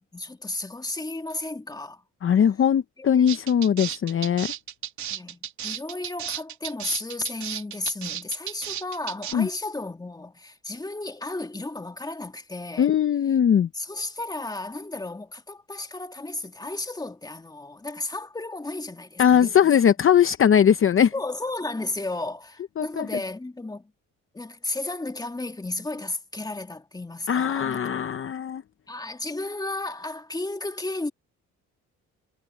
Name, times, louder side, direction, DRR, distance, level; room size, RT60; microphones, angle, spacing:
voice 1, 0.0-2.0 3.0-3.4 5.1-12.9 13.7-19.7 21.1-23.9 24.3-27.8 28.9-31.1, left 2 dB, 15° left, 1.9 m, -33 dB
voice 2, 2.2-4.5 9.3-9.5 12.8-13.7 19.2-21.1 22.8-23.1 27.3-28.6, left 8 dB, 45° left, 0.8 m, -20 dB
sound 1, 3.3-9.3, right 10 dB, 70° right, 2.8 m, -34 dB
cardioid pair, 90°, 30 cm